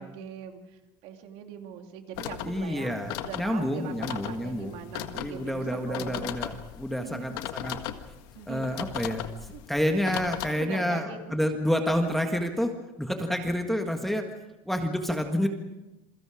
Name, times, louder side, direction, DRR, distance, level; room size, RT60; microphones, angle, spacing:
voice 1, 0.0-6.4 7.0-7.3 8.3-8.7 9.5-9.6 10.6-12.1, right 7 dB, 60° right, 4 dB, 2.7 m, -42 dB
sound 1, 2.1-10.5, left 13 dB, 85° left, 1.7 m, -38 dB
voice 2, 2.4-4.8 5.1-7.8 8.5-9.3 9.7-12.7 13.0-14.2 14.6-15.5, equal, ahead, 4 dB, 1.7 m, -29 dB
28.5 x 23.0 x 5.0 m, 0.97 s
cardioid pair, 170°, 12 cm